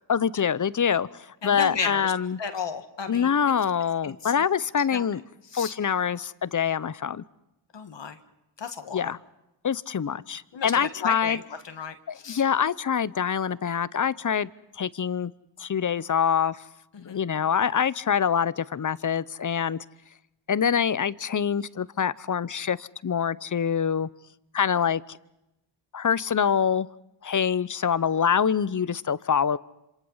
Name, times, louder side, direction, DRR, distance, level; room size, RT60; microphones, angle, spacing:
voice 1, 0.1-2.4 3.1-5.2 5.5-7.2 8.9-9.2 9.6-11.4 12.1-14.5 14.8-15.3 15.6-16.6 17.0-19.8 20.5-24.1 24.5-25.2 25.9-26.9 27.2-29.6, left 7 dB, 40° left, 18 dB, 0.8 m, -25 dB
voice 2, 1.4-2.1 2.4-3.3 4.0-4.3 4.9-5.1 5.5-5.7 7.7-8.2 8.6-9.1 10.5-12.0 12.2-12.4 16.9-17.2, left 6 dB, 65° left, 7 dB, 1.8 m, -34 dB
27.0 x 26.0 x 5.6 m, 0.92 s
cardioid pair, 55°, 46 cm